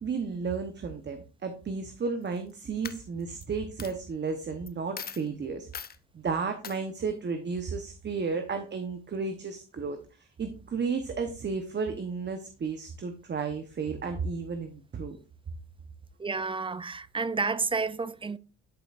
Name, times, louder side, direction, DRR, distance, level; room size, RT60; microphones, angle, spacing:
voice 1, 0.0-5.7 6.1-15.2, right 5 dB, 35° right, 0.9 m, -33 dB
Coin (dropping), 2.2-2.5 2.8-3.4 3.8-3.9 4.7-4.8 5.0-5.3 5.7-6.0 6.6-6.8, left 7 dB, 30° left, 0.5 m, -40 dB
voice 2, 16.2-18.4, right 4 dB, 20° right, 0.4 m, -30 dB
11.5 x 5.1 x 2.5 m
cardioid pair, 90°, 30 cm